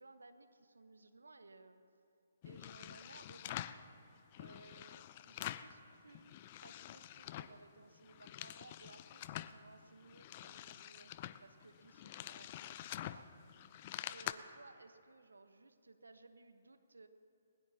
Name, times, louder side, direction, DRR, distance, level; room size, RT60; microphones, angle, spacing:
voice 1, 0.0-1.8 2.4-3.8 4.4-6.3 6.6-13.5 14.0-17.1, right 3 dB, 80° right, 9 dB, 1.2 m, -60 dB
sound 1, 2.4-3.8 4.3-5.8 6.1-7.6 8.0-9.6 10.0-14.3, left 13 dB, 40° left, 0.5 m, -47 dB
21.0 x 20.5 x 2.9 m, 2.5 s
figure-of-eight pair, 135°, 0 cm